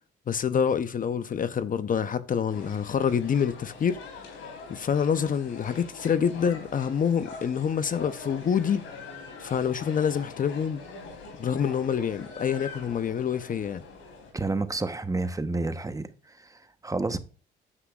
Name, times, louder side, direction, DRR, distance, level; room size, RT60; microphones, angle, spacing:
voice 1, 0.3-4.3 4.7-8.8 9.4-10.8 11.4-13.8, left 7 dB, 45° left, 0.6 m, -27 dB
sound 1, 2.5-14.3, left 4 dB, 90° left, 3.8 m, -43 dB
voice 2, 14.3-16.1 16.4-17.2, right 3 dB, 15° right, 0.9 m, -30 dB
9.7 x 7.9 x 2.3 m
cardioid pair, 90°, 20 cm